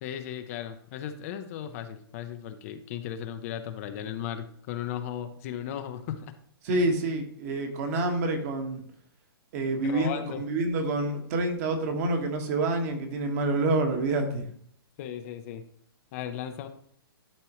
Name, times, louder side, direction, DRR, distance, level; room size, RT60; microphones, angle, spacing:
voice 1, 0.0-6.3 6.7-6.8 9.8-10.4 15.0-15.6 16.1-16.7, left 10 dB, 35° left, 8 dB, 0.6 m, -36 dB
voice 2, 6.6-8.8 9.5-14.5, right 2 dB, 40° right, 4 dB, 1.4 m, -27 dB
11.5 x 4.4 x 3.0 m, 0.63 s
hypercardioid pair, 150°, 13 cm